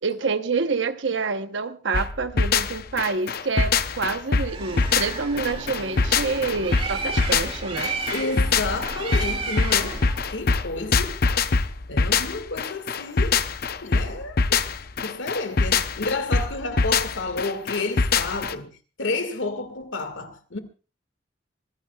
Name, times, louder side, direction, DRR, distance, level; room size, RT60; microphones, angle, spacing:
voice 1, 0.0-7.9, right 4 dB, 75° right, 1.0 m, -27 dB
sound 1, 1.9-18.5, left 4 dB, 55° left, 0.7 m, -23 dB
Bird, 4.4-10.4, right 3 dB, 30° right, 2.3 m, -33 dB
voice 2, 8.1-10.0 10.3-11.2 11.9-13.4 13.8-14.6 15.0-18.7 19.0-20.6, left 3 dB, 85° left, 2.0 m, -30 dB
25.5 x 15.5 x 2.3 m
head